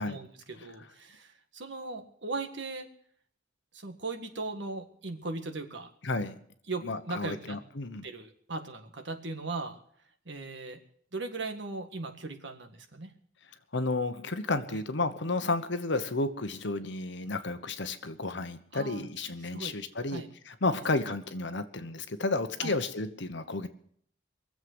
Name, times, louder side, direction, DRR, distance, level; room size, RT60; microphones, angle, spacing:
voice 1, 0.0-2.9 3.7-5.9 6.7-7.6 8.0-9.8 10.3-10.8 11.1-13.1 14.7-14.8 18.7-19.1 19.5-19.8 20.1-20.3 22.6-22.8, right 3 dB, 65° right, 6 dB, 1.8 m, -38 dB
voice 2, 6.0-6.4 6.8-8.0 13.7-23.7, left 2 dB, 65° left, 10 dB, 1.1 m, -32 dB
22.0 x 7.7 x 8.0 m, 0.64 s
head